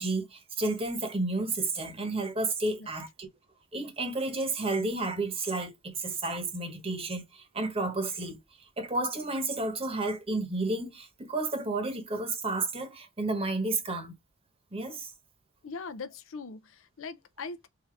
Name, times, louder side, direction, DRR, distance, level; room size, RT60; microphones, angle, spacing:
voice 1, 0.0-3.3 3.7-8.4 8.8-14.1 14.7-15.1, right 2 dB, 25° right, 1.0 m, -31 dB
voice 2, 15.6-17.7, left 4 dB, 65° left, 0.5 m, -40 dB
3.9 x 2.7 x 3.1 m
head